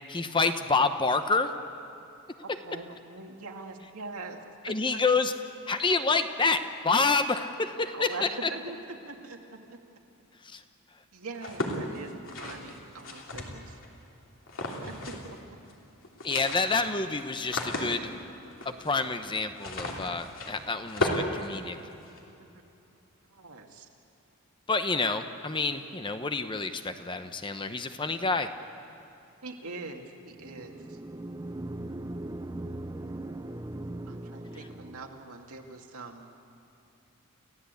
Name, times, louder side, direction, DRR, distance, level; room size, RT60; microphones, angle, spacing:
voice 1, 0.1-1.5 4.6-5.3 5.7-8.5 10.5-10.6 16.2-18.1 18.6-21.8 24.7-28.5, left 3 dB, 20° left, 8 dB, 0.9 m, -28 dB
voice 2, 2.4-4.4 4.9-5.0 7.9-9.8 11.1-12.1 12.4-13.8 14.9-15.4 22.4-22.5 23.3-23.9 29.4-31.0 34.1-36.3, right 3 dB, 85° right, 2 dB, 2.3 m, -42 dB
sound 1, 11.4-13.9 14.5-15.4 15.6-15.7 16.0-22.2, left 1 dB, 60° left, 3.1 m, -35 dB
sound 2, 30.3-35.3, right 1 dB, 15° right, 0.6 m, -39 dB
29.5 x 15.5 x 8.3 m, 2.8 s
head